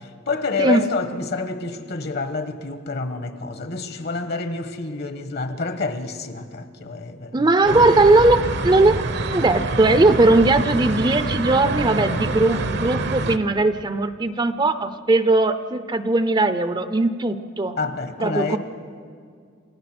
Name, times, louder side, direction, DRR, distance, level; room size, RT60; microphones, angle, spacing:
voice 1, 0.0-7.5 17.8-18.6, left 3 dB, 55° left, 1.3 m, -28 dB
voice 2, 7.3-17.8 18.2-18.6, right 2 dB, 20° right, 0.6 m, -19 dB
sound 1, 7.7-13.4, right 2 dB, 60° right, 1.0 m, -26 dB
28.5 x 16.5 x 6.1 m
head